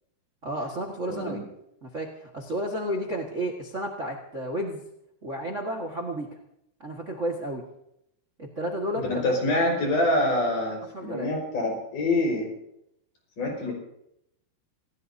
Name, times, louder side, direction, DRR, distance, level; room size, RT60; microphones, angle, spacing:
voice 1, 0.4-1.4 1.8-4.8 5.2-6.3 6.8-7.7 8.4-9.3 10.9-11.3, right 1 dB, 90° right, 1 dB, 0.6 m, -32 dB
voice 2, 1.1-1.4 9.0-12.5 13.4-13.7, left 1 dB, 55° left, 1 dB, 6.5 m, -26 dB
27.5 x 17.0 x 2.8 m, 0.79 s
omnidirectional pair, 4.5 m